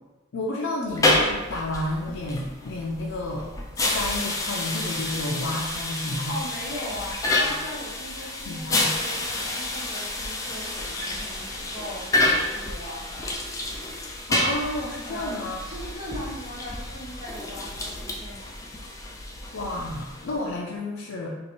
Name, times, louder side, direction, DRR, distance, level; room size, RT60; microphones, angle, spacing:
voice 1, 0.3-3.5 3.7-6.4 8.5-8.9 14.3-15.6 19.5-21.3, left 1 dB, 75° left, -4 dB, 0.5 m, -31 dB
sound 1, 0.9-20.5, left 2 dB, 15° left, 0.4 m, -29 dB
voice 2, 6.3-13.4 15.0-15.4 15.6-18.5, equal, 20° right, -7 dB, 1.2 m, -39 dB
3.0 x 2.8 x 4.4 m, 1.1 s
head